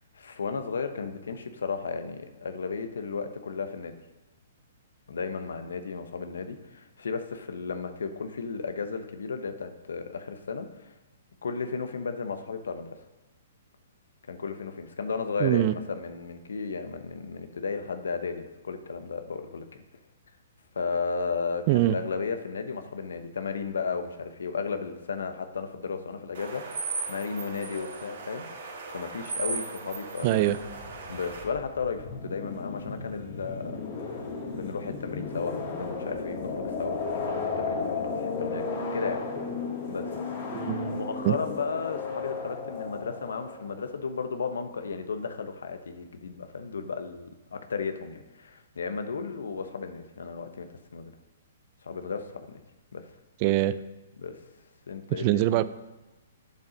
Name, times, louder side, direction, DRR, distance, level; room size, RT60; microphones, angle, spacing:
voice 1, 0.1-4.0 5.1-10.9 11.4-12.9 14.3-19.7 20.7-26.8 27.1-30.4 31.1-34.2 34.5-39.2 39.9-40.2 40.9-50.7 50.9-51.1 51.8-52.6 52.9-53.0 54.2-54.3 54.9-55.4, left 5 dB, 80° left, 8 dB, 0.9 m, -34 dB
voice 2, 15.4-15.7 21.7-21.9 30.2-30.6 40.5-41.0 41.2-41.4 53.4-53.8 55.2-55.7, right 15 dB, 40° right, 15 dB, 0.4 m, -23 dB
sound 1, 26.3-31.4, right 4 dB, 65° right, 2.6 m, -37 dB
sound 2, 30.6-43.9, left 4 dB, 50° left, 2.3 m, -34 dB
8.1 x 6.9 x 5.1 m, 1.1 s
hypercardioid pair, 135°, 0 cm